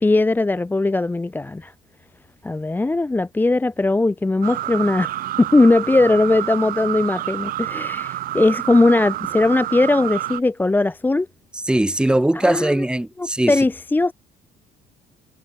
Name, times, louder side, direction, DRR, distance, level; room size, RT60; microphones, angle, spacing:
voice 1, 0.0-1.7 2.4-5.1 5.4-11.3 12.4-12.8 13.2-14.1, left 2 dB, 10° left, 0.7 m, -19 dB
sound 1, 4.4-10.4, right 14 dB, 70° right, 2.7 m, -28 dB
voice 2, 11.5-13.6, right 1 dB, 5° right, 2.1 m, -20 dB
cardioid pair, 95°, 15 cm